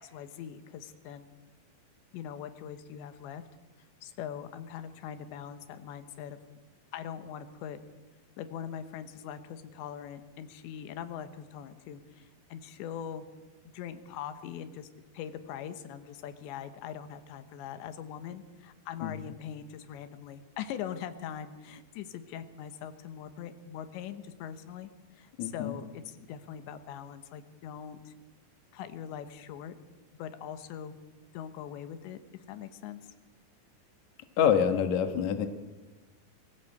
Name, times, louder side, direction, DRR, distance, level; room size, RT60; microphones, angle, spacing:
voice 1, 0.0-1.3 2.1-3.4 4.0-6.4 6.9-7.8 8.4-13.3 13.7-14.9 15.1-28.1 28.7-29.8 30.2-30.9 31.3-33.1, left 9 dB, 90° left, 10 dB, 3.5 m, -42 dB
voice 2, 25.4-25.7 34.4-35.5, left 8 dB, 55° left, 7 dB, 2.2 m, -26 dB
22.5 x 15.5 x 8.1 m, 1.2 s
omnidirectional pair, 5.0 m